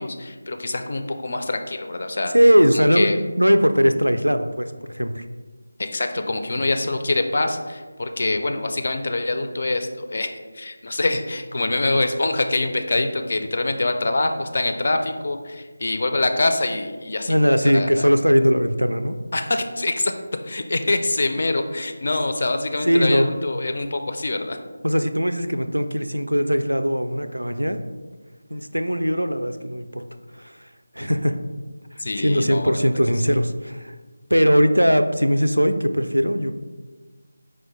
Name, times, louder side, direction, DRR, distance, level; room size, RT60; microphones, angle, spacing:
voice 1, 0.0-2.3 2.7-3.2 5.8-18.1 19.3-20.1 20.4-24.6 32.0-32.8 33.2-33.4, left 2 dB, 45° left, 6 dB, 0.3 m, -25 dB
voice 2, 2.3-5.3 17.3-19.2 22.8-23.3 24.8-27.8 28.5-30.0 30.4-30.7 30.9-31.4 32.2-33.9 34.3-36.5, equal, 85° right, 9 dB, 0.3 m, -20 dB
4.6 x 2.1 x 4.4 m, 1.4 s
figure-of-eight pair, 165°, 0 cm